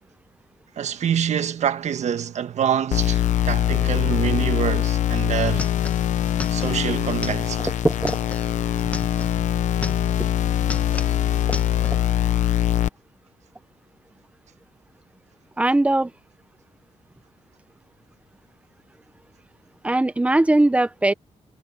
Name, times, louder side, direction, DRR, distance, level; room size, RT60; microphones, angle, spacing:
voice 1, 0.8-5.7 6.5-7.6, right 9 dB, 70° right, 1.3 m, -25 dB
sound 1, 2.9-12.9, left 11 dB, 85° left, 0.8 m, -23 dB
sound 2, 4.9-5.0 5.2-9.4 9.7-10.3 10.6-12.0, left 2 dB, 10° left, 1.3 m, -36 dB
voice 2, 7.8-8.2 10.2-10.3 11.5-11.6 11.9-12.0 15.6-16.1 19.8-21.1, right 2 dB, 10° right, 0.8 m, -20 dB
cardioid pair, 120°, 12 cm